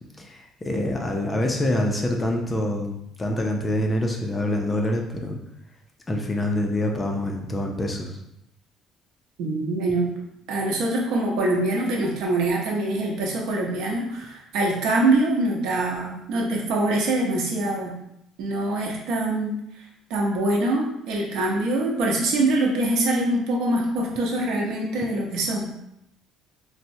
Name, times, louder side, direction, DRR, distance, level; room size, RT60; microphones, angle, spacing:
voice 1, 0.2-5.4 6.1-8.1, left 1 dB, 15° left, 2 dB, 0.3 m, -26 dB
voice 2, 9.4-10.1 10.5-17.9 18.4-19.6 20.1-25.7, right 2 dB, 75° right, -1 dB, 0.8 m, -24 dB
4.2 x 2.0 x 2.6 m, 0.79 s
cardioid pair, 175°, 0 cm